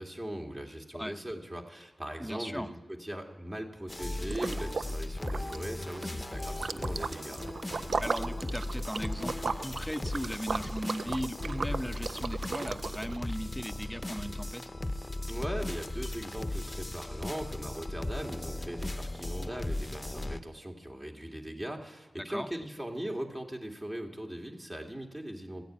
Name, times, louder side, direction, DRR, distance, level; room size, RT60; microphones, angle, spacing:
voice 1, 0.0-7.5 15.3-25.6, right 1 dB, 30° right, 1 dB, 2.5 m, -40 dB
voice 2, 2.2-2.7 8.0-14.7 22.3-22.5, equal, ahead, 9 dB, 0.9 m, -37 dB
sound 1, 3.9-20.4, left 1 dB, 25° left, 0.9 m, -37 dB
Liquid, 4.3-5.0 5.2-13.2, right 4 dB, 75° right, 0.4 m, -37 dB
14.0 x 9.2 x 8.8 m, 1.1 s
cardioid pair, 45°, 0 cm